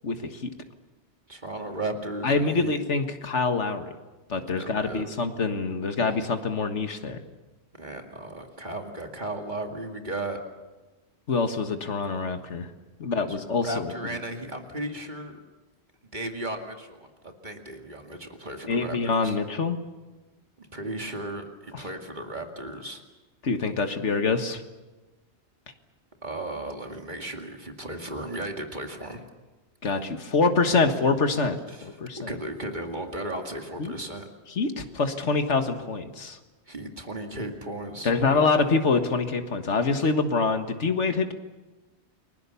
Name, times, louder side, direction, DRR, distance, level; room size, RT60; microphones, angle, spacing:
voice 1, 1.3-2.8 4.6-5.1 7.7-10.4 13.3-15.4 16.1-19.4 20.6-23.0 26.2-29.2 31.7-32.0 32.3-34.3 36.7-38.5, right 1 dB, 40° right, 4 dB, 2.4 m, -35 dB
voice 2, 2.2-3.9 4.3-7.2 11.3-12.7 13.0-13.9 18.7-19.8 23.4-24.6 29.8-32.3 33.8-33.9 34.6-36.4 38.0-41.3, left 4 dB, 90° left, 7 dB, 1.9 m, -25 dB
30.0 x 21.0 x 7.0 m, 1.2 s
omnidirectional pair, 1.2 m